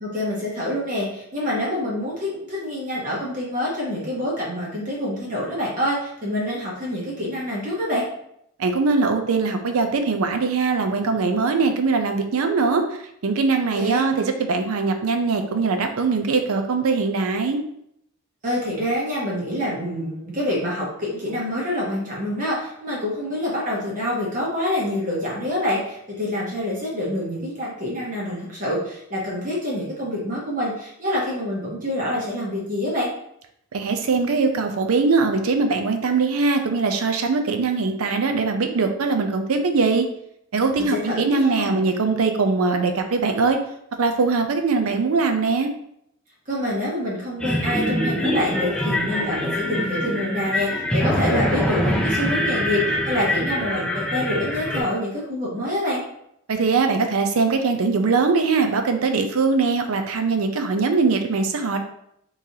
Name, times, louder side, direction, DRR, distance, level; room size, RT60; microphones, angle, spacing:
voice 1, 0.0-8.0 13.7-14.0 18.4-33.1 40.8-41.8 46.5-56.0, left 1 dB, 35° right, -4 dB, 0.8 m, -26 dB
voice 2, 8.6-12.8 13.2-17.6 33.7-40.1 40.5-43.6 44.0-45.7 56.5-61.8, right 4 dB, 75° right, 6 dB, 0.5 m, -21 dB
sound 1, 47.4-54.8, left 1 dB, 5° left, 0.4 m, -24 dB
3.8 x 3.1 x 2.7 m, 0.74 s
head